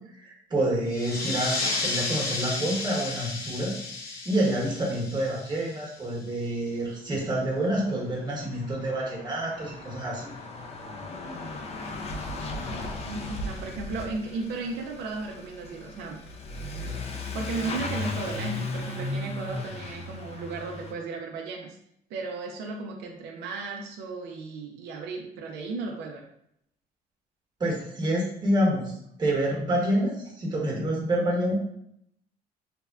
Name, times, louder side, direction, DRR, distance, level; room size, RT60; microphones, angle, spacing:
voice 1, 0.2-3.7 4.1-10.3 27.6-31.5, right 1 dB, 25° right, -3 dB, 1.1 m, -28 dB
sound 1, 0.9-6.1, left 3 dB, 65° left, 0.7 m, -32 dB
Truck / Accelerating revving vroom, 7.3-7.4 7.5-20.9, left 2 dB, 40° left, 0.4 m, -36 dB
voice 2, 12.7-16.2 17.3-21.8 22.1-26.3, right 3 dB, 80° right, 1 dB, 0.4 m, -35 dB
3.4 x 2.1 x 2.3 m, 0.72 s
cardioid pair, 110°, 17 cm